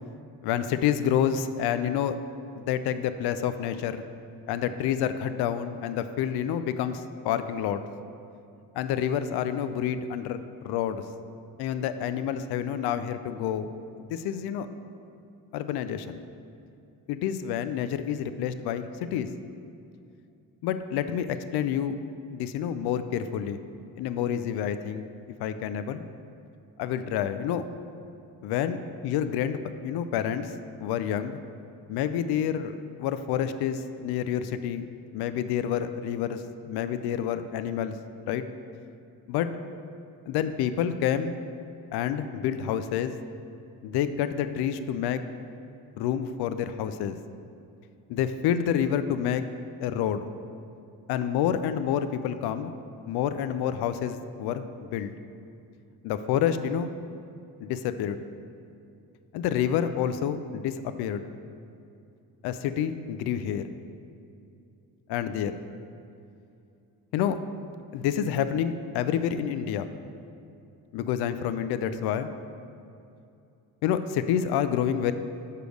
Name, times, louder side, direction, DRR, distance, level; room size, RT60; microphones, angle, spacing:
voice 1, 0.4-2.2 2.6-4.0 4.5-7.8 8.7-11.0 11.6-13.7 14.1-14.7 15.5-16.2 17.1-19.3 20.6-22.0 22.3-23.6 24.0-25.1 25.4-26.0 26.8-27.7 28.4-28.8 29.0-30.5 30.8-31.4 31.9-34.9 35.1-38.0 38.3-38.4 39.3-39.5 40.3-41.4 41.9-43.2 43.8-45.2 46.0-47.2 48.1-49.4 49.8-50.3 51.1-52.7 53.1-55.1 56.0-56.9 57.6-58.2 59.3-61.2 62.4-63.6 65.1-65.6 67.1-67.4 67.9-69.9 70.9-72.3 73.8-75.1, left 9 dB, 70° left, 11 dB, 0.5 m, -28 dB
6.7 x 5.1 x 6.2 m, 2.6 s
supercardioid pair, 80°, 40 cm